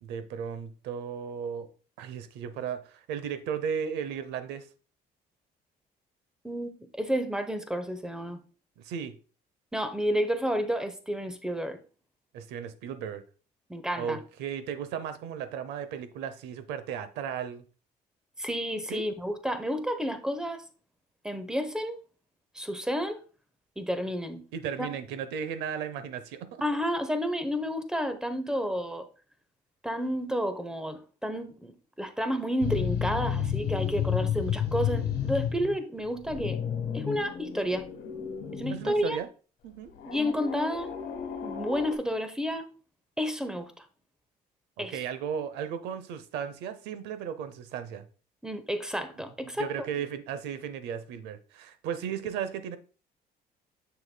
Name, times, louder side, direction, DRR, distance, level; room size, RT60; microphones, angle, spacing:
voice 1, 0.0-1.7 2.0-4.7 8.8-9.2 12.3-13.2 14.0-17.6 18.9-19.1 24.5-26.5 38.7-39.3 39.6-39.9 44.8-48.0 49.6-52.8, right 8 dB, 90° right, 0.7 m, -35 dB
voice 2, 6.4-8.4 9.7-11.8 13.7-14.2 18.4-20.6 21.2-22.0 22.5-23.2 23.8-24.4 24.8-24.9 26.6-29.0 29.8-36.6 36.9-37.9 38.5-39.2 40.1-40.9 41.4-42.7 43.2-43.8 44.8-45.0 48.4-49.7, equal, 5° right, 0.8 m, -31 dB
sound 1, 32.6-35.7 36.1-39.1 40.0-42.0, left 8 dB, 70° left, 1.2 m, -32 dB
7.0 x 6.6 x 2.2 m
cardioid pair, 110°, 17 cm